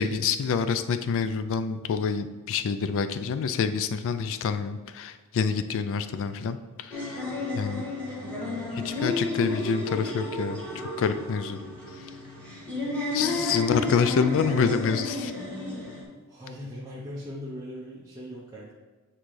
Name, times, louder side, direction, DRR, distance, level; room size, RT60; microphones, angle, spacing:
voice 1, 0.0-7.2 7.5-7.8 8.8-11.6 13.1-15.3, left 6 dB, 65° left, 11 dB, 0.3 m, -27 dB
sound 1, 6.9-16.0, left 3 dB, 5° left, 1.4 m, -32 dB
voice 2, 8.0-8.7 13.9-14.9 16.3-18.7, equal, 15° right, -8 dB, 0.8 m, -40 dB
8.1 x 3.7 x 3.2 m, 1.3 s
head